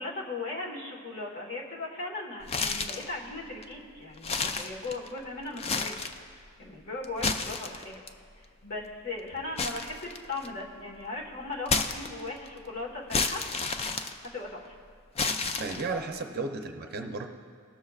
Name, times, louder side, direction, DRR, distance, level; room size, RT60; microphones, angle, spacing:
voice 1, 0.0-6.3 6.6-8.0 8.6-13.4 14.3-14.7, left 2 dB, 45° left, -4 dB, 1.5 m, -38 dB
sound 1, 2.4-3.1 3.6-3.7 4.2-5.2 5.5-6.2 7.0-8.1 9.6-10.6 11.7-12.5 13.1-14.7 15.2-16.1, left 4 dB, 25° left, 0.3 m, -30 dB
voice 2, 15.6-17.3, right 3 dB, 45° right, 4 dB, 0.6 m, -34 dB
19.0 x 6.4 x 2.4 m, 2.1 s
head